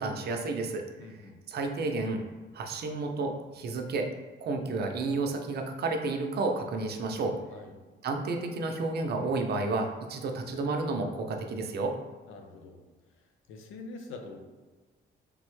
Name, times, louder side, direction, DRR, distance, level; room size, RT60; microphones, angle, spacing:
voice 1, 0.0-0.9 1.5-2.2 2.5-4.1 4.4-7.4 8.0-11.9, right 3 dB, 55° right, 4 dB, 0.5 m, -31 dB
voice 2, 1.0-1.4 7.5-7.8 12.3-12.8 13.5-14.4, left 3 dB, 90° left, 4 dB, 0.5 m, -44 dB
3.4 x 2.0 x 3.1 m, 1.3 s
cardioid pair, 90°, 20 cm